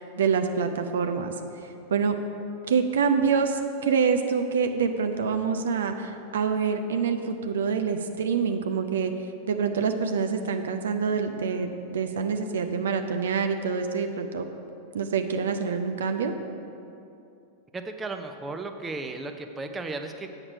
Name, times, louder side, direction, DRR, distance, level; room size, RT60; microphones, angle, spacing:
voice 1, 0.0-2.2 2.7-14.5 14.9-16.3, right 5 dB, 65° right, 7 dB, 0.5 m, -26 dB
voice 2, 17.7-20.3, right 3 dB, 15° right, 6 dB, 0.6 m, -35 dB
8.5 x 6.6 x 5.9 m, 2.7 s
figure-of-eight pair, 90°, 0 cm